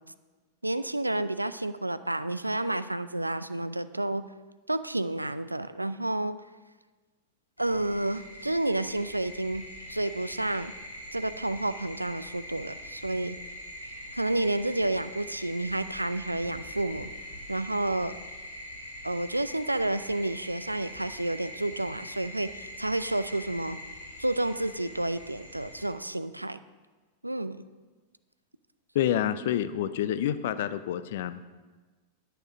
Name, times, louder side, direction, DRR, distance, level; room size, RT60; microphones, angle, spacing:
voice 1, 0.6-4.3 4.7-6.4 7.6-10.7 11.1-13.4 14.1-17.1 17.5-18.2 19.0-23.8 24.2-26.6 27.2-27.6, right 1 dB, 85° right, 13 dB, 0.4 m, -30 dB
sound 1, 7.6-25.9, equal, 85° left, 2.0 m, -43 dB
voice 2, 28.9-31.5, left 11 dB, 55° left, 13 dB, 0.5 m, -28 dB
10.5 x 6.7 x 5.1 m, 1.3 s
figure-of-eight pair, 90°, 0 cm